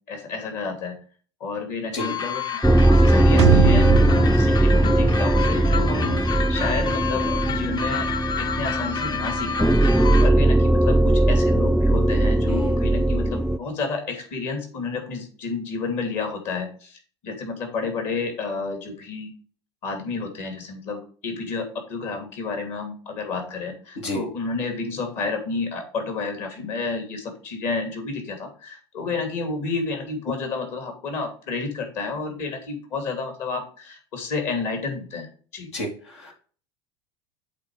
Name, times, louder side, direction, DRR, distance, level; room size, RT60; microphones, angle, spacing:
voice 1, 0.1-0.9 1.4-8.1 8.4-9.8 10.2-19.3 19.8-35.7, left 4 dB, 55° left, 4 dB, 2.8 m, -30 dB
sound 1, 2.0-10.3, left 6 dB, 30° left, 0.7 m, -30 dB
sound 2, 2.6-13.6, right 1 dB, ahead, 0.3 m, -19 dB
sound 3, 3.4-6.2 6.5-6.6, right 9 dB, 80° right, 0.4 m, -24 dB
voice 2, 12.5-12.8 24.0-24.2 35.7-36.3, left 1 dB, 80° left, 0 dB, 2.4 m, -31 dB
8.2 x 3.9 x 4.8 m, 0.41 s
hypercardioid pair, 75°, 14 cm